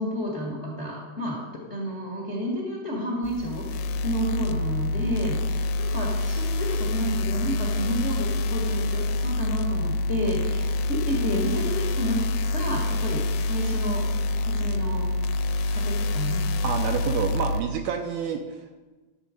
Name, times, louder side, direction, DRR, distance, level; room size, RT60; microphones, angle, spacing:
voice 1, 0.0-1.4 1.7-12.2 12.5-14.0 14.4-15.1 15.7-16.5, equal, 40° left, -3 dB, 0.9 m, -31 dB
sound 1, 3.2-17.6, left 2 dB, 85° left, 2.8 m, -26 dB
voice 2, 16.6-18.7, right 7 dB, 75° right, 4 dB, 2.3 m, -28 dB
12.5 x 7.3 x 5.2 m, 1.2 s
omnidirectional pair, 4.9 m